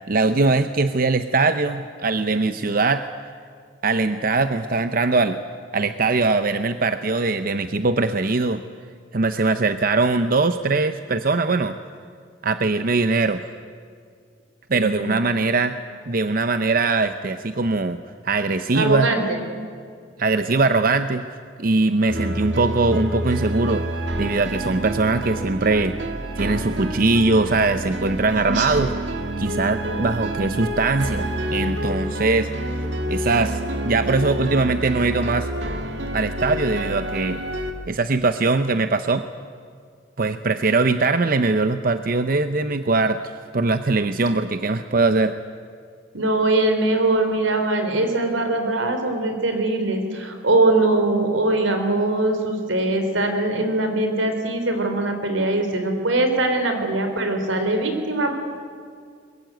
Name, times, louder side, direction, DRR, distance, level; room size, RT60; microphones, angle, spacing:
voice 1, 0.1-3.0 3.8-5.4 5.7-8.6 9.1-11.7 12.4-13.4 14.7-15.8 16.1-19.1 20.2-21.3 21.6-23.8 24.2-26.0 26.4-28.9 29.4-32.7 33.1-33.6 33.8-35.5 36.1-37.4 37.9-39.2 40.2-45.3, right 3 dB, 50° right, 10 dB, 0.7 m, -21 dB
voice 2, 14.7-15.2 18.7-19.2 28.5-28.7 29.8-30.0 46.1-58.3, right 2 dB, 85° right, 6 dB, 4.0 m, -22 dB
sound 1, 22.1-37.7, right 1 dB, 65° right, 2.1 m, -28 dB
23.0 x 21.5 x 9.2 m, 2.2 s
head